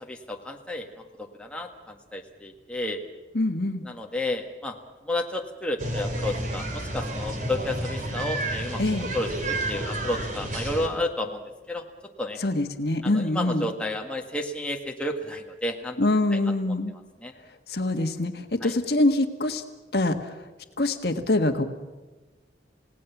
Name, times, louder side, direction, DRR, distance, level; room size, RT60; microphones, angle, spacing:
voice 1, 0.1-0.9 1.2-3.0 3.8-4.7 5.0-8.8 9.1-11.4 11.7-11.8 12.2-12.4 13.0-16.0 16.3-16.4 17.2-17.3 18.6-18.7, left 1 dB, 5° left, 1 dB, 1.7 m, -31 dB
voice 2, 3.3-3.8 8.8-9.1 12.4-13.7 16.0-17.0 17.7-19.6 19.9-20.3 20.8-21.6, left 2 dB, 60° left, 7 dB, 1.6 m, -24 dB
sound 1, 5.8-10.9, right 1 dB, 45° right, 3.2 m, -30 dB
29.0 x 17.5 x 7.2 m, 1.2 s
head